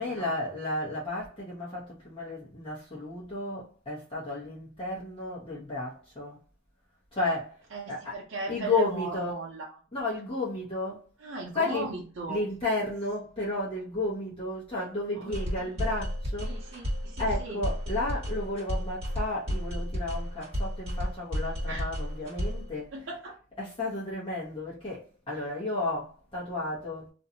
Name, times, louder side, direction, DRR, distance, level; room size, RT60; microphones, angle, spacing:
voice 1, 0.0-6.4 7.1-7.6 7.9-8.2 8.5-9.4 9.9-11.0 11.5-11.9 12.3-16.5 17.2-23.2 23.6-27.1, left 2 dB, 30° left, 0.9 m, -33 dB
voice 2, 7.7-9.7 11.2-12.4 15.1-15.3 15.8-15.9 16.4-17.6 21.7-21.9 22.9-23.4, right 3 dB, 85° right, 0.6 m, -37 dB
sound 1, 15.3-22.7, equal, 35° right, 1.3 m, -32 dB
2.5 x 2.3 x 2.7 m
head